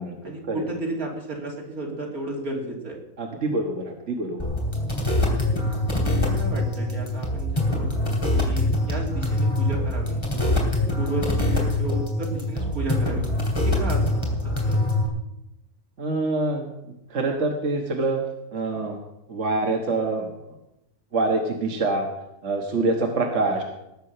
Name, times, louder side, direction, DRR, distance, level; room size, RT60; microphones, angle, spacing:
voice 1, 0.2-3.0 6.0-10.6 11.0-13.3 13.6-14.8, right 2 dB, 75° right, -1 dB, 3.5 m, -33 dB
voice 2, 3.2-4.5 16.0-16.7 17.1-18.2 18.5-19.0 19.3-20.6 21.1-22.1 22.4-23.6, right 2 dB, 55° right, 2 dB, 1.7 m, -25 dB
sound 1, 4.4-15.1, left 1 dB, 20° left, 2.6 m, -24 dB
19.0 x 8.4 x 5.7 m, 0.91 s
omnidirectional pair, 1.6 m